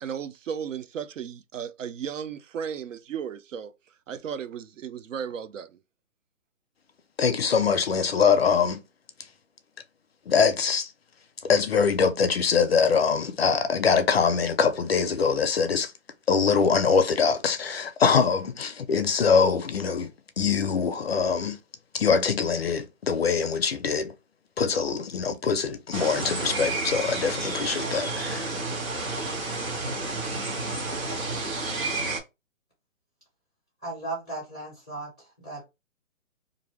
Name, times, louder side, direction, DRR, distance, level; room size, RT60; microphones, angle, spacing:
voice 1, 0.0-3.7 4.1-5.8, right 7 dB, 65° right, 0.5 m, -35 dB
voice 2, 7.2-8.8 10.3-10.9 11.4-15.9 16.3-20.1 20.4-21.6 21.9-24.1 24.6-28.5, left 6 dB, 50° left, 0.4 m, -23 dB
sound 1, 25.9-32.2, right 2 dB, 85° right, 1.5 m, -30 dB
voice 3, 33.8-35.6, right 2 dB, 5° right, 0.5 m, -36 dB
2.6 x 2.5 x 3.1 m
hypercardioid pair, 155°, 40 cm